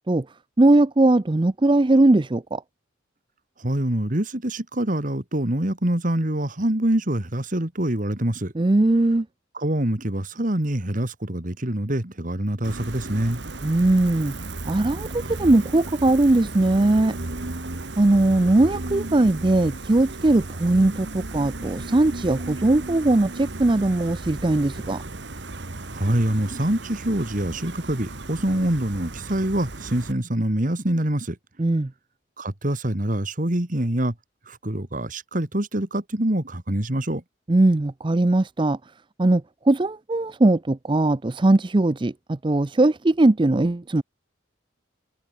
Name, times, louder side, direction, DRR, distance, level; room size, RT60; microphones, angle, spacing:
voice 1, 0.6-2.6 8.6-9.3 13.6-14.3 14.7-17.1 18.0-25.0 31.6-31.9 37.5-38.8 39.2-44.0, right 2 dB, 25° right, 0.5 m, -20 dB
voice 2, 3.6-8.5 9.5-13.4 25.9-31.4 32.4-34.1 34.5-37.2, right 1 dB, 45° right, 2.2 m, -25 dB
Gull seagull, 12.6-30.1, right 2 dB, 60° right, 1.6 m, -35 dB
head